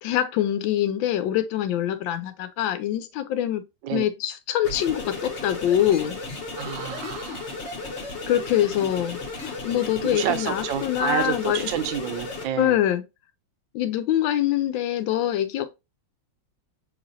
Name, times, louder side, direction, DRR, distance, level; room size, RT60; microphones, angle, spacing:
voice 1, 0.0-3.6 3.9-6.2 8.3-11.6 12.6-13.0 13.7-15.7, left 11 dB, 80° left, 1.3 m, -24 dB
sound 1, 4.6-12.4, left 3 dB, 50° left, 0.9 m, -34 dB
voice 2, 6.5-7.5 10.0-12.7, right 10 dB, 80° right, 1.3 m, -29 dB
4.9 x 3.2 x 2.5 m
omnidirectional pair, 2.1 m